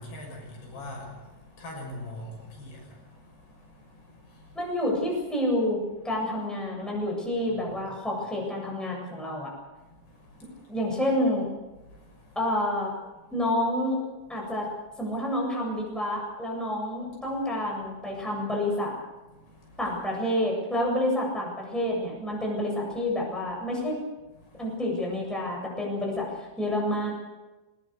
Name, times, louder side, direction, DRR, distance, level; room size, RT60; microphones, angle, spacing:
voice 1, 0.0-4.8 7.5-7.7 9.8-10.8 11.8-12.4 13.2-13.3 14.4-14.5 18.1-18.3 19.3-19.8 24.3-24.8, left 1 dB, 70° left, 0 dB, 8.6 m, -44 dB
voice 2, 4.5-9.5 10.7-11.5 12.4-12.9 13.3-14.0 14.3-14.7 15.0-18.9 19.8-24.0 24.6-26.3 26.6-27.1, left 1 dB, ahead, -2 dB, 7.4 m, -28 dB
24.5 x 21.0 x 6.8 m, 1.1 s
omnidirectional pair, 5.0 m